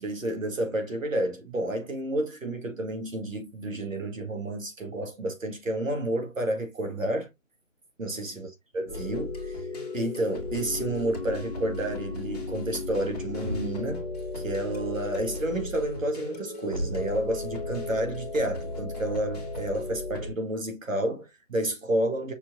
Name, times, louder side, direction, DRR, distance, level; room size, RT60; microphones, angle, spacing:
voice 1, 0.0-7.3 8.0-8.5 8.7-9.7 9.9-14.0 14.3-22.3, right 1 dB, 80° right, 1.9 m, -30 dB
sound 1, 8.9-20.3, left 2 dB, 30° left, 1.3 m, -35 dB
Thump thud, 13.3-14.0 16.7-17.2, equal, 35° right, 0.8 m, -35 dB
6.0 x 3.3 x 2.6 m
figure-of-eight pair, 160°, 39 cm